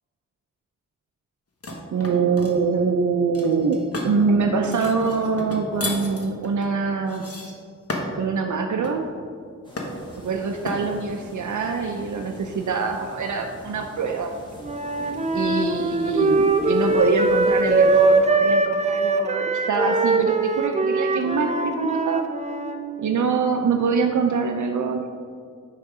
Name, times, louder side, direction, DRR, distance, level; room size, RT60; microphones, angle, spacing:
sound 1, 1.6-2.6 3.3-4.2 4.7-8.3 8.8-9.1 9.8-10.2 10.7-10.9, left 2 dB, 50° left, 1.2 m, -33 dB
voice 1, 1.9-7.2 8.1-9.1 10.2-14.3 15.3-22.2 23.0-25.1, right 5 dB, 80° right, 3 dB, 0.5 m, -24 dB
sound 2, 9.6-18.2, equal, 15° left, 1.9 m, -43 dB
Wind instrument woodwind instrument, 14.6-22.8, right 3 dB, 25° right, 0.6 m, -21 dB
6.3 x 5.7 x 4.8 m, 2.2 s
wide cardioid pair, 75°, 30 cm